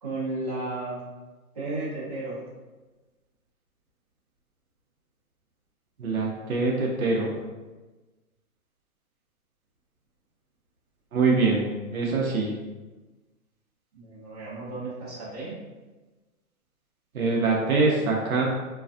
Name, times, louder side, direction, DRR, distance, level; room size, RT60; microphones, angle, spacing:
voice 1, 0.0-1.0 1.5-2.4 13.9-15.6, right 2 dB, 25° right, -12 dB, 0.7 m, -33 dB
voice 2, 6.0-7.4 11.1-11.6 11.9-12.5 17.1-18.4, right 3 dB, 65° right, -2 dB, 0.6 m, -24 dB
2.5 x 2.3 x 2.3 m, 1.2 s
hypercardioid pair, 180°, 45 cm